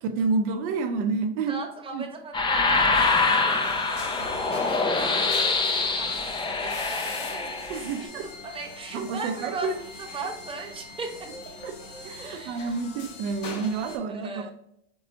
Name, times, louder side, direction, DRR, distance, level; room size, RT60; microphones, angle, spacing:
voice 1, 0.0-1.6 1.9-2.0 7.7-8.3 8.9-9.7 11.6-14.5, right 4 dB, 65° right, 0.6 m, -29 dB
voice 2, 1.4-5.5 5.8-7.7 8.0-8.1 8.4-9.7 10.1-11.3 12.2-12.7 14.1-14.5, right 3 dB, 15° right, 0.9 m, -39 dB
sound 1, 2.3-8.0, left 3 dB, 15° left, 0.4 m, -25 dB
sound 2, 2.9-14.0, left 3 dB, 85° left, 1.3 m, -41 dB
4.5 x 4.0 x 2.7 m
supercardioid pair, 110°, 37 cm